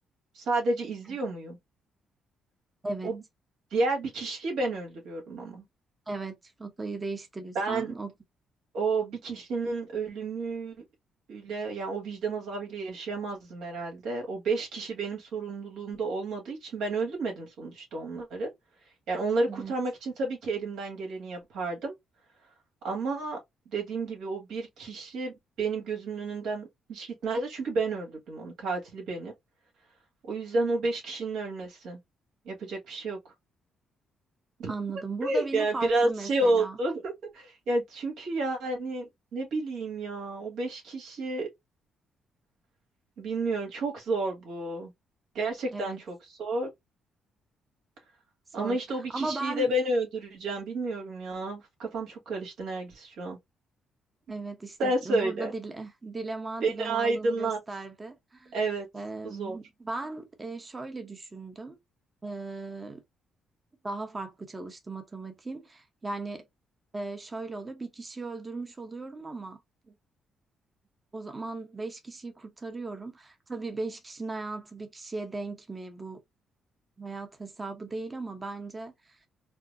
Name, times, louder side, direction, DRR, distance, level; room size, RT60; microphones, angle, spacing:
voice 1, 0.3-1.6 3.0-3.2 3.7-5.6 7.6-7.9 8.7-10.8 11.3-18.5 19.1-21.9 22.8-23.4 23.7-29.3 30.3-32.0 32.5-33.2 34.6-34.7 35.2-41.5 43.2-44.9 45.4-46.7 48.5-53.4 54.8-55.5 56.6-57.6 58.5-58.9 59.2-59.6, right 2 dB, 80° right, 1.8 m, -31 dB
voice 2, 6.1-8.1 19.5-19.7 34.7-36.8 45.7-46.0 48.6-48.8 49.1-49.7 54.3-58.6 58.9-61.8 62.2-63.0 63.8-66.5 66.9-69.6 69.9-70.0 71.1-76.2 77.0-79.2, right 3 dB, 25° right, 0.9 m, -37 dB
4.3 x 2.1 x 2.6 m
cardioid pair, 90°, 0 cm